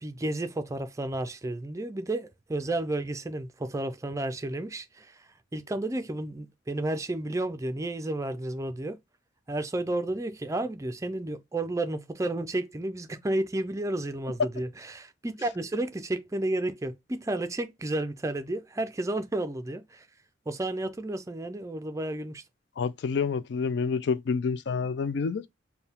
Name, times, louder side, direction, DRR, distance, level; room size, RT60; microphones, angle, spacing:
voice 1, 0.0-5.1 5.5-9.0 9.5-20.0 20.5-22.4, right 1 dB, 15° right, 0.4 m, -32 dB
voice 2, 22.8-25.4, left 5 dB, 60° left, 0.4 m, -28 dB
4.4 x 2.2 x 3.5 m
head